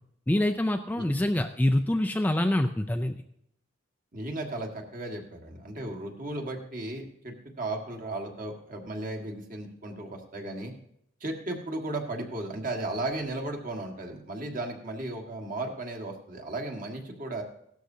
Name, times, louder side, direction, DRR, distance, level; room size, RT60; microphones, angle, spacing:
voice 1, 0.3-3.2, left 1 dB, 10° left, 5 dB, 0.3 m, -25 dB
voice 2, 4.1-10.7 11.2-17.4, right 2 dB, 40° right, 2 dB, 1.6 m, -35 dB
17.0 x 12.5 x 2.7 m, 0.74 s
head